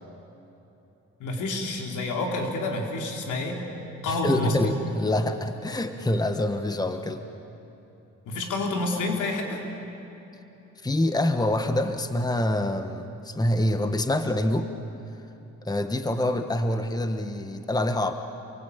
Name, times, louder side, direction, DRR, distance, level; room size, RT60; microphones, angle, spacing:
voice 1, 1.2-3.7 4.0-4.7 8.3-9.6, left 2 dB, 80° left, 2 dB, 4.2 m, -28 dB
voice 2, 4.1-7.2 10.8-14.7 15.6-18.1, left 1 dB, 15° left, 8 dB, 1.4 m, -26 dB
28.0 x 23.5 x 8.7 m, 3.0 s
cardioid pair, 90°, 30 cm